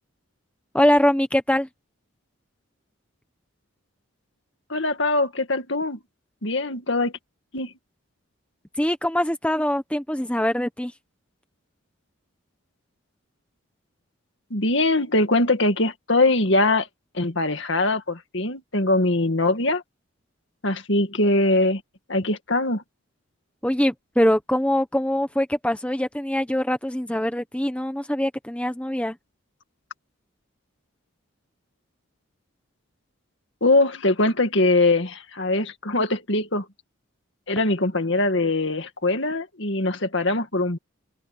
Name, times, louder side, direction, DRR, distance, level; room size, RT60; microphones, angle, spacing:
voice 1, 0.7-1.7 8.8-10.9 23.6-29.2, left 1 dB, 5° left, 1.1 m, -23 dB
voice 2, 4.7-6.0 6.4-7.1 7.5-7.7 14.5-16.9 17.1-19.8 20.6-21.8 22.1-22.8 33.6-36.7 37.5-40.8, left 2 dB, 60° left, 2.2 m, -22 dB
open air
head